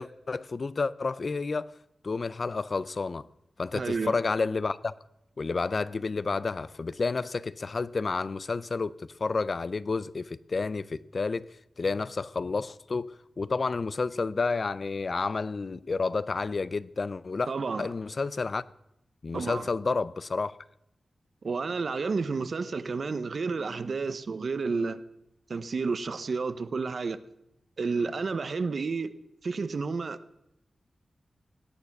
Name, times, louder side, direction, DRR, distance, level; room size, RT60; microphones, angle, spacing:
voice 1, 0.0-1.7 2.0-3.3 3.6-4.9 5.4-11.5 11.8-17.5 17.8-18.6 19.2-20.5, left 4 dB, 50° left, 0.5 m, -30 dB
voice 2, 3.7-4.1 17.5-17.9 19.3-19.7 21.4-25.0 25.5-27.2 27.8-29.1 29.4-30.2, right 4 dB, 60° right, 0.8 m, -31 dB
17.0 x 9.5 x 6.0 m
wide cardioid pair, 105°, 0 cm